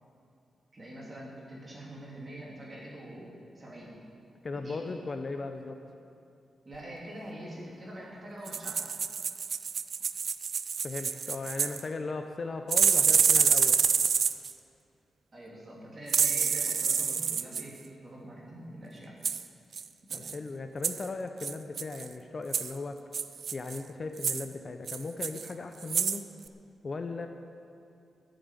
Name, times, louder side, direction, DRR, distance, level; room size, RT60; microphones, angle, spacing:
voice 1, 0.7-3.3 3.5-3.9 4.5-4.8 6.6-8.8 15.3-19.1 20.1-20.2, right 1 dB, 25° right, -4 dB, 3.0 m, -44 dB
voice 2, 4.4-5.8 10.8-13.8 20.1-23.0 23.5-26.2 26.8-27.3, left 3 dB, 30° left, 6 dB, 0.6 m, -37 dB
sound 1, 8.5-11.8 12.7-14.5 16.1-17.6 19.2-19.4 19.7-19.8 20.1-20.3 20.8-21.1 21.4-22.1 22.5-22.7 23.1-23.8 24.2-24.4 24.9-25.5 25.8-26.2 26.5-26.6, right 6 dB, 50° right, 0.4 m, -27 dB
12.0 x 7.8 x 9.5 m, 2.5 s
wide cardioid pair, 175°, 0 cm